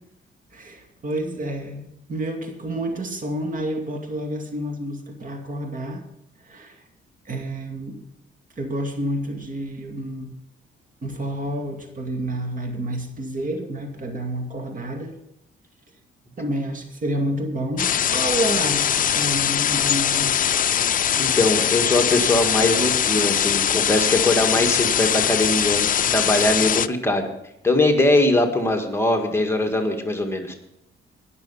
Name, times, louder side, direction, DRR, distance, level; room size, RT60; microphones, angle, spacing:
voice 1, 0.5-6.0 6.4-6.8 7.3-8.0 8.6-10.3 11.0-15.2 16.4-20.4, right 1 dB, 40° right, 4 dB, 2.2 m, -29 dB
sound 1, 17.8-26.9, left 9 dB, 45° left, 0.5 m, -21 dB
voice 2, 21.1-27.3 27.6-30.5, left 2 dB, 10° left, 3 dB, 1.8 m, -21 dB
19.5 x 6.8 x 5.5 m, 0.80 s
cardioid pair, 90°, 20 cm